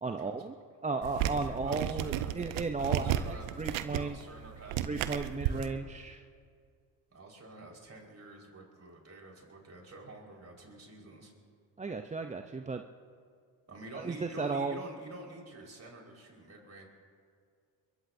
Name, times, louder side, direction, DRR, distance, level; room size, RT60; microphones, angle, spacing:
voice 1, 0.0-0.5 0.8-4.2 4.8-6.2 11.8-12.8 13.9-14.8, right 4 dB, 15° right, 5 dB, 0.6 m, -35 dB
voice 2, 0.9-2.4 2.8-5.8 7.1-11.3 13.7-16.9, right 2 dB, 30° right, 0 dB, 4.8 m, -49 dB
sound 1, 1.0-5.7, right 11 dB, 75° right, 0.8 m, -33 dB
23.0 x 22.0 x 2.7 m, 2.2 s
supercardioid pair, 70°, 48 cm